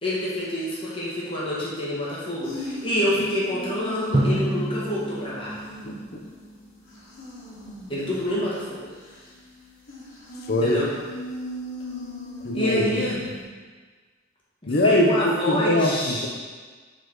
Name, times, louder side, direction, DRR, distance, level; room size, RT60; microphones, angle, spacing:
voice 1, 0.0-5.6 7.9-8.8 10.6-10.9 12.5-13.2 14.6-16.3, left 1 dB, 25° left, -7 dB, 1.8 m, -27 dB
sound 1, 2.4-13.4, equal, 85° left, 2.0 m, -39 dB
Drum, 4.1-6.8, right 1 dB, 25° right, 0.5 m, -28 dB
voice 2, 5.8-6.2 10.5-10.8 12.4-13.0 14.7-15.2 15.5-16.3, left 1 dB, 50° left, 3 dB, 0.7 m, -22 dB
6.9 x 4.2 x 4.6 m, 1.5 s
head